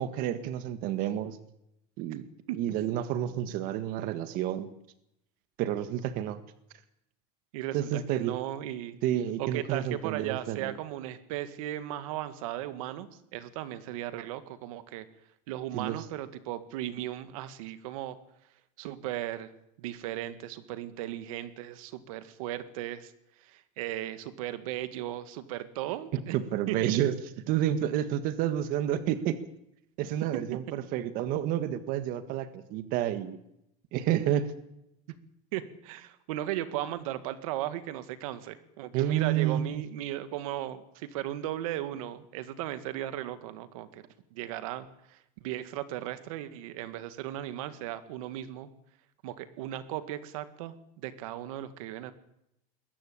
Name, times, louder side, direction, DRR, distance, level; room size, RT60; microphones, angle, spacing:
voice 1, 0.0-1.4 2.0-2.3 2.5-4.7 5.6-6.4 7.7-8.3 9.0-10.7 15.7-16.0 26.1-27.1 27.5-29.4 30.0-33.4 33.9-34.5 38.9-39.8, right 11 dB, 55° right, 11 dB, 1.7 m, -30 dB
voice 2, 7.5-9.0 9.4-15.1 15.5-18.2 18.8-19.5 19.8-23.1 23.4-26.4 26.7-27.0 35.5-44.0 44.3-48.7 49.2-52.1, right 13 dB, 85° right, 11 dB, 2.0 m, -36 dB
21.5 x 16.5 x 8.8 m, 0.80 s
cardioid pair, 150°, 17 cm